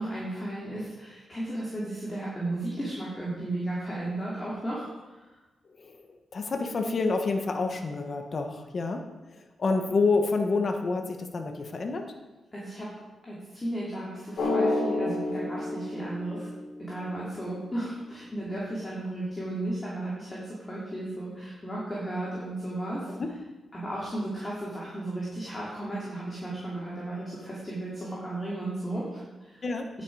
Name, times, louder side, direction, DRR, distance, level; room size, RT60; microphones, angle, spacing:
voice 1, 0.0-4.9 12.5-12.9 13.2-16.5 16.8-23.1 23.7-29.6, right 1 dB, 15° left, -7 dB, 2.7 m, -34 dB
voice 2, 5.8-12.1 23.2-23.3 29.6-29.9, left 3 dB, 35° left, 4 dB, 1.2 m, -28 dB
Drum, 14.4-17.0, left 2 dB, 55° left, 3.2 m, -29 dB
18.0 x 7.2 x 4.9 m, 1.1 s
wide cardioid pair, 170°, 0 cm